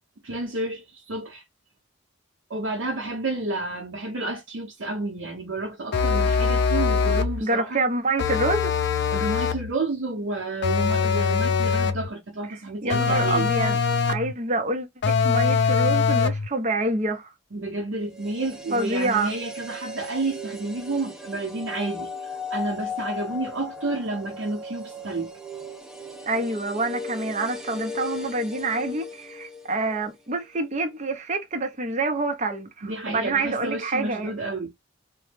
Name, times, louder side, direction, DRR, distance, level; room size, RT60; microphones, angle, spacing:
voice 1, 0.2-1.4 2.5-7.8 9.1-13.5 17.5-25.3 32.8-34.7, right 2 dB, 70° right, 0.7 m, -30 dB
sound 1, 5.9-7.4 8.2-9.7 10.6-12.1 12.9-14.3 15.0-16.5, left 5 dB, 55° left, 0.4 m, -22 dB
voice 2, 7.4-8.7 12.5-13.8 14.1-17.3 18.7-19.3 26.3-34.3, right 2 dB, 35° right, 0.7 m, -27 dB
sound 2, 18.0-30.2 30.4-30.5, left 3 dB, 5° right, 0.4 m, -37 dB
3.0 x 2.1 x 3.2 m
head